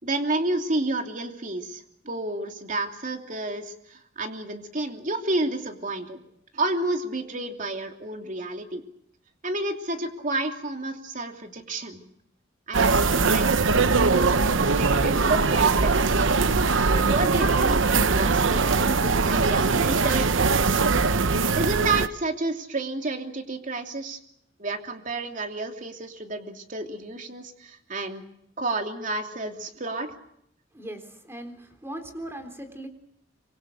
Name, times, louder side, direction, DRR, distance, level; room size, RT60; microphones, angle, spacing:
voice 1, 0.0-6.2 6.5-8.8 9.4-12.0 12.7-16.2 16.9-20.8 21.6-24.2 24.6-28.2 28.6-30.1, right 2 dB, 45° right, 4 dB, 2.9 m, -30 dB
sound 1, 12.7-22.1, right 4 dB, 90° right, 0.9 m, -21 dB
voice 2, 30.7-32.9, right 1 dB, 15° right, 5 dB, 3.9 m, -39 dB
26.0 x 25.0 x 6.5 m, 0.73 s
head